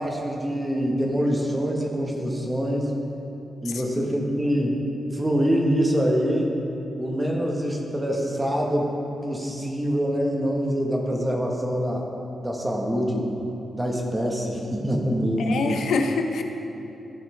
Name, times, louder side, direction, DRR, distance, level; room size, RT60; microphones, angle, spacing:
voice 1, 0.0-2.9 3.6-4.8 5.1-6.5 7.0-8.9 9.2-12.1 12.4-13.3 13.7-15.8, equal, 10° right, 0 dB, 1.0 m, -25 dB
voice 2, 3.7-4.3 15.4-16.4, left 4 dB, 80° left, 4 dB, 0.6 m, -27 dB
14.0 x 6.4 x 3.2 m, 2.9 s
wide cardioid pair, 155°, 0 cm